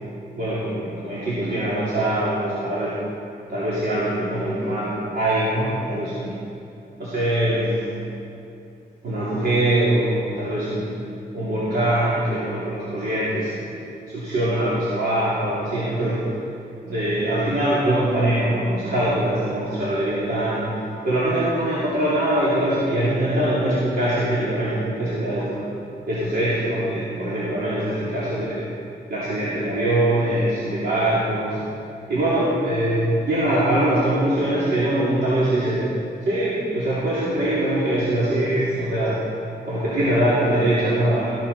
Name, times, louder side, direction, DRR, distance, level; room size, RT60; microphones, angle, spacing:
voice 1, 0.3-3.0 3.5-6.4 7.0-8.0 9.0-10.9 11.3-13.6 14.1-16.2 16.8-20.7 21.0-25.6 26.1-28.6 29.1-31.6 32.1-35.9 36.2-39.2 39.6-41.3, right 1 dB, 75° right, -10 dB, 2.9 m, -22 dB
15.0 x 12.0 x 4.2 m, 2.6 s
wide cardioid pair, 170°, 16 cm